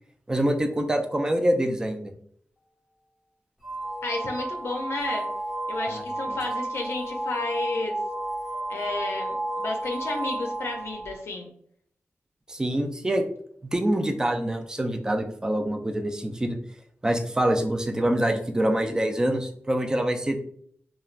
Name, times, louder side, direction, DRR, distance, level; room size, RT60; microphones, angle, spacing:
voice 1, 0.3-2.1 5.9-6.4 12.5-13.2 13.7-16.6 17.0-20.4, right 1 dB, 15° right, 5 dB, 0.3 m, -25 dB
sound 1, 3.6-11.2, right 1 dB, ahead, 0.9 m, -32 dB
voice 2, 4.0-5.2 5.7-8.0 8.7-11.5, left 3 dB, 80° left, 1 dB, 0.4 m, -32 dB
3.1 x 2.2 x 2.4 m, 0.63 s
wide cardioid pair, 145°, 4 cm